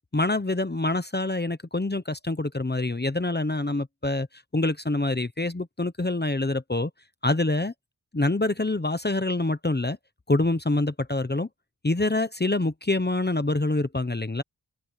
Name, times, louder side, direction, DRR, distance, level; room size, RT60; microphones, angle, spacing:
voice 1, 0.1-4.3 4.5-6.9 7.2-7.7 8.1-10.0 10.3-11.5 11.8-14.4, left 2 dB, 25° left, 1.0 m, -26 dB
wide cardioid pair, 60°, 39 cm